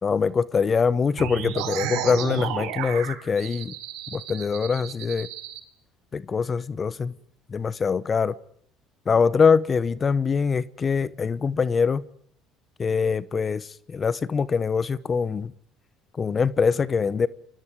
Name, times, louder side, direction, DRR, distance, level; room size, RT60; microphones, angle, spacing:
voice 1, 0.0-3.7 4.1-5.3 6.1-7.1 7.5-8.3 9.1-12.0 12.8-15.5 16.1-17.3, left 5 dB, 35° left, 1.0 m, -23 dB
sound 1, 1.2-5.6, right 11 dB, 75° right, 5.9 m, -32 dB
29.5 x 24.5 x 4.9 m
hypercardioid pair, 70°, 0 cm